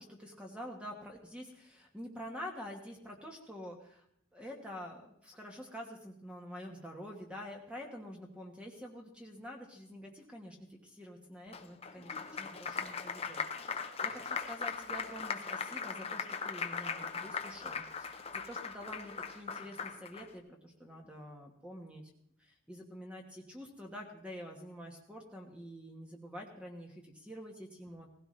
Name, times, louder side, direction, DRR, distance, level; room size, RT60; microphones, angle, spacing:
voice 1, 0.0-4.0 4.3-22.1 22.4-28.1, equal, 5° right, 0 dB, 1.3 m, -47 dB
Applause, 11.5-20.3, left 5 dB, 30° left, 0.8 m, -39 dB
17.5 x 16.0 x 3.2 m, 0.73 s
head